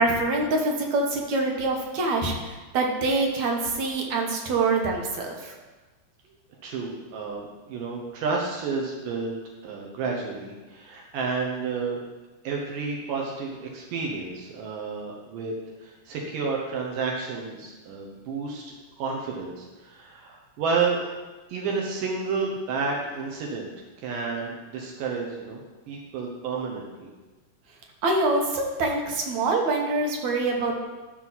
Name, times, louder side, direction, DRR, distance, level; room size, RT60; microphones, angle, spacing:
voice 1, 0.0-5.5 28.0-30.8, right 3 dB, 65° right, 1 dB, 2.3 m, -25 dB
voice 2, 6.6-9.4 9.6-12.0 12.4-15.5 15.8-21.1 21.5-23.7 24.0-25.6 25.9-27.1, right 4 dB, 85° right, -1 dB, 2.7 m, -31 dB
12.0 x 6.1 x 4.0 m, 1.2 s
omnidirectional pair, 3.7 m